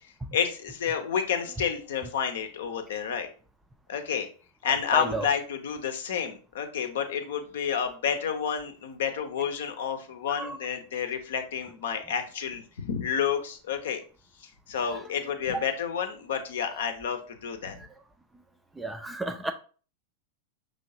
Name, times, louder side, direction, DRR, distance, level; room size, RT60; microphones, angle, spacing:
voice 1, 0.3-3.3 3.9-4.3 4.6-14.0 14.4-17.8, left 7 dB, 60° left, 0.7 m, -30 dB
voice 2, 4.9-5.3 10.4-10.6 15.5-15.6 18.8-19.5, right 2 dB, 10° right, 0.4 m, -32 dB
5.4 x 3.2 x 2.7 m
figure-of-eight pair, 90°, 0 cm